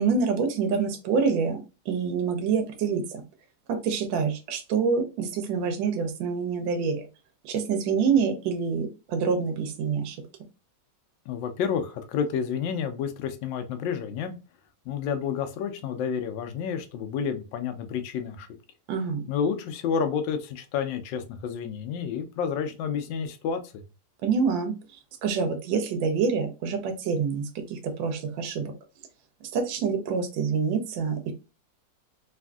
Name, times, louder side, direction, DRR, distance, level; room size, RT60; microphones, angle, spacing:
voice 1, 0.0-3.2 3.7-7.1 7.4-10.2 18.9-19.2 24.2-24.7 25.2-28.7 29.4-31.3, right 5 dB, 80° right, 5 dB, 1.4 m, -26 dB
voice 2, 11.3-14.3 14.9-18.5 19.3-23.8, left 7 dB, 75° left, 7 dB, 1.3 m, -30 dB
3.4 x 2.5 x 2.2 m, 0.30 s
omnidirectional pair, 2.1 m